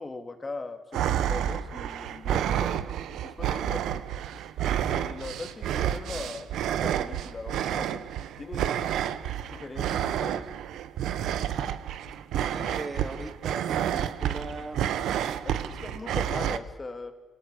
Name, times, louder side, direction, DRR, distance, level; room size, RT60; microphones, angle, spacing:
voice 1, 0.0-2.9 3.2-4.1 4.4-4.5 4.8-6.5 6.8-8.8 9.5-10.6 15.4-17.1, left 3 dB, 25° left, 6 dB, 2.6 m, -40 dB
sound 1, 0.9-16.6, right 10 dB, 80° right, 1.0 m, -30 dB
voice 2, 12.4-14.9, right 3 dB, 25° right, 7 dB, 2.4 m, -38 dB
26.0 x 18.0 x 8.4 m, 1.2 s
cardioid pair, 90°, 0 cm